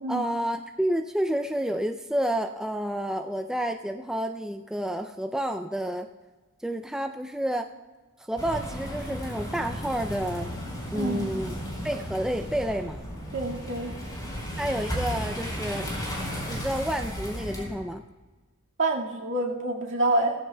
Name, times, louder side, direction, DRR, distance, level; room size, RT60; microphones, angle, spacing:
voice 1, 0.1-6.1 6.6-7.7 8.3-10.5 10.9-11.5 11.8-13.0 14.6-15.9 16.5-18.0, right 1 dB, 5° right, 5 dB, 0.3 m, -29 dB
sound 1, 8.4-17.7, equal, 20° left, 4.0 m, -34 dB
voice 2, 10.9-11.3 13.3-13.9 18.8-20.4, right 2 dB, 60° right, -1 dB, 1.9 m, -27 dB
17.5 x 15.0 x 2.2 m, 1.3 s
head